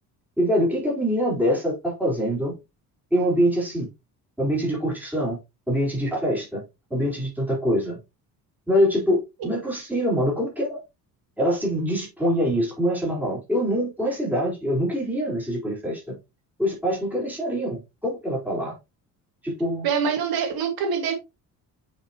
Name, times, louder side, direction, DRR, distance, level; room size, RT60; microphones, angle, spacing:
voice 1, 0.4-2.5 3.1-3.9 4.4-5.4 5.7-6.6 6.9-8.0 8.7-10.8 11.4-16.2 16.6-18.8 19.4-19.9, equal, 5° right, 4.1 m, -24 dB
voice 2, 19.8-21.1, right 6 dB, 70° right, 1.9 m, -24 dB
8.6 x 5.3 x 3.0 m
cardioid pair, 175°, 37 cm